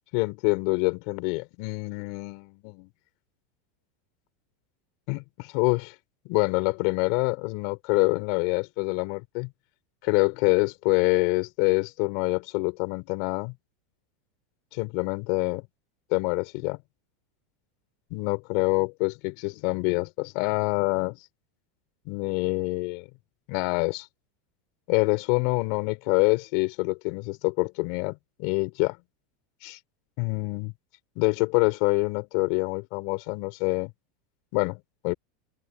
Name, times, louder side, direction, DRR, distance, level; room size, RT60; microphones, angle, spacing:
voice 1, 0.1-2.9 5.1-5.9 6.2-9.5 10.0-13.5 14.7-15.7 16.1-16.8 18.1-21.2 22.1-23.1 23.5-24.1 24.9-29.0 29.6-29.8 30.2-30.7 31.2-33.9 34.5-35.1, left 31 dB, 60° left, 4.5 m, -26 dB
open air
supercardioid pair, 115°, 0 cm